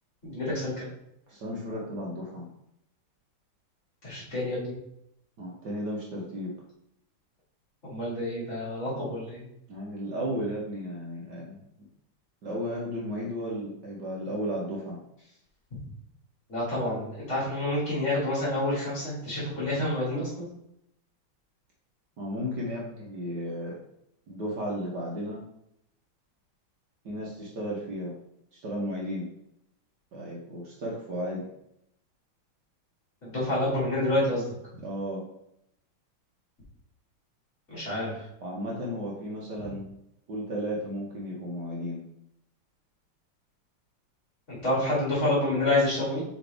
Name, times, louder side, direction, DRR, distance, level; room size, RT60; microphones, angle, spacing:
voice 1, 0.2-0.9 4.0-4.7 7.8-9.4 15.8-15.9 16.5-20.5 33.2-34.5 37.7-38.2 44.5-46.2, left 1 dB, 35° left, -7 dB, 2.8 m, -28 dB
voice 2, 1.3-2.5 5.4-6.5 9.7-11.6 12.4-15.0 22.2-23.8 24.3-25.4 27.0-28.1 28.5-29.3 30.1-31.5 34.8-35.2 38.4-39.9 40.3-42.0, equal, 55° right, -3 dB, 1.6 m, -34 dB
6.8 x 4.1 x 3.4 m, 0.79 s
omnidirectional pair, 2.4 m